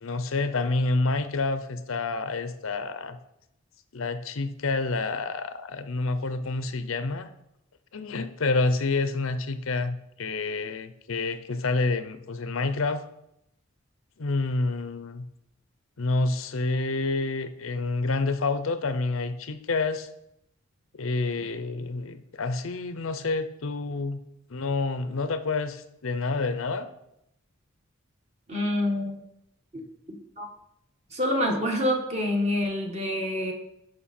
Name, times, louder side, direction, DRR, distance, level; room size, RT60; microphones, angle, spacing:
voice 1, 0.0-3.2 3.9-7.3 7.9-13.0 14.2-15.3 16.0-20.1 20.9-24.2 24.5-26.9, left 3 dB, 75° left, 11 dB, 0.6 m, -28 dB
voice 2, 28.5-29.2 29.7-29.8 30.1-30.5 31.1-33.5, left 1 dB, 30° right, 2 dB, 1.4 m, -27 dB
11.0 x 5.5 x 4.3 m, 0.80 s
head